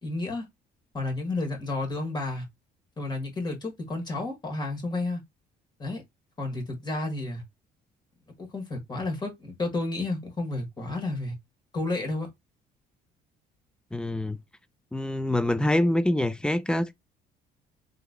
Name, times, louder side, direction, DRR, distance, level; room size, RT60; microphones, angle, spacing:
voice 1, 0.0-0.5 0.9-2.5 3.0-5.2 5.8-6.0 6.4-7.4 8.4-11.3 11.7-12.3, left 2 dB, 25° left, 1.5 m, -31 dB
voice 2, 13.9-14.4 14.9-16.9, left 1 dB, 5° left, 0.3 m, -25 dB
3.9 x 3.0 x 2.2 m
cardioid pair, 110°, 17 cm